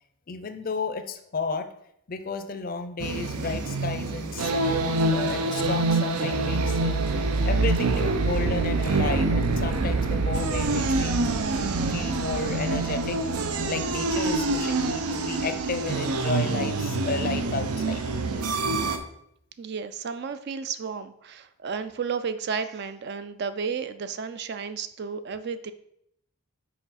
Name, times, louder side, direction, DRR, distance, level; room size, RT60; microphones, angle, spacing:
voice 1, 0.3-1.7 2.1-7.0 7.5-18.0, left 4 dB, 40° left, 9 dB, 0.5 m, -33 dB
sound 1, 3.0-19.0, right 3 dB, 90° right, 0.6 m, -26 dB
voice 2, 19.6-25.7, right 6 dB, 50° right, 11 dB, 0.3 m, -32 dB
5.8 x 4.9 x 4.0 m, 0.74 s
head